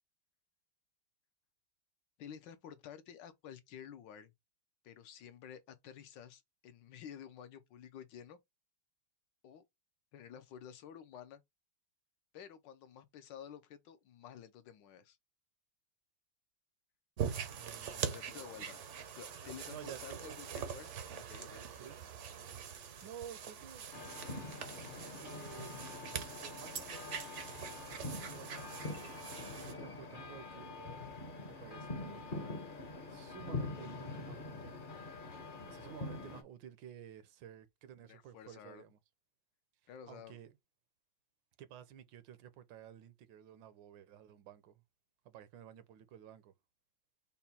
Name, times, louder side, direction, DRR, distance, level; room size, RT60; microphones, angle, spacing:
voice 1, 2.2-4.3 4.8-8.4 9.4-9.6 10.1-11.4 12.3-15.2 18.1-18.8 19.1-20.9 21.1-21.7 38.0-38.8 39.9-40.4, left 8 dB, 75° left, 1.3 m, -51 dB
sound 1, 17.2-29.7, right 7 dB, 60° right, 0.8 m, -43 dB
voice 2, 17.5-18.4 19.7-20.5 21.8-22.0 23.0-23.8 25.2-25.7 26.4-27.2 27.7-29.1 29.5-31.0 31.4-32.5 33.1-34.8 35.1-35.2 35.7-39.0 40.1-40.5 41.6-44.8 45.2-46.5, right 10 dB, 75° right, 1.3 m, -53 dB
sound 2, 23.9-36.4, left 3 dB, 40° left, 0.7 m, -44 dB
5.5 x 2.2 x 4.1 m
omnidirectional pair, 2.1 m